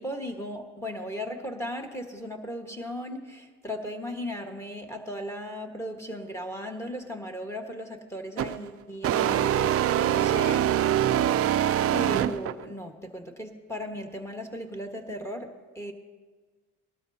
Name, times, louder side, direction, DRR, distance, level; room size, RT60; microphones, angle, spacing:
voice 1, 0.0-10.7 11.6-15.5 15.7-15.9, equal, 10° left, 3 dB, 1.5 m, -37 dB
sound 1, 8.4-8.6 9.0-12.6, right 10 dB, 45° right, 0.5 m, -24 dB
19.5 x 12.5 x 2.8 m, 1.4 s
cardioid pair, 95°, 34 cm